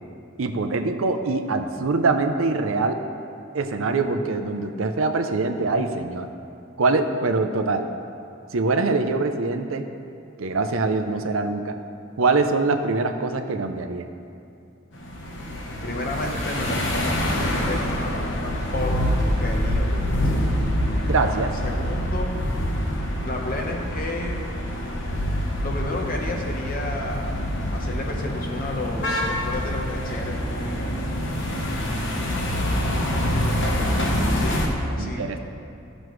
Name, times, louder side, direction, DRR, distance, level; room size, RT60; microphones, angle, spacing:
voice 1, 0.4-3.0 3.5-6.3 6.8-7.9 8.5-9.9 10.4-11.8 12.2-14.1 21.0-21.5 35.0-35.4, right 3 dB, 85° right, 6 dB, 0.6 m, -23 dB
sound 1, 14.9-34.7, equal, 60° left, 1.2 m, -26 dB
voice 2, 15.8-20.3 21.6-22.4 23.2-24.4 25.6-27.5 27.7-30.9 34.3-35.3, left 2 dB, 45° left, 1 dB, 1.0 m, -32 dB
14.0 x 6.3 x 3.2 m, 2.5 s
head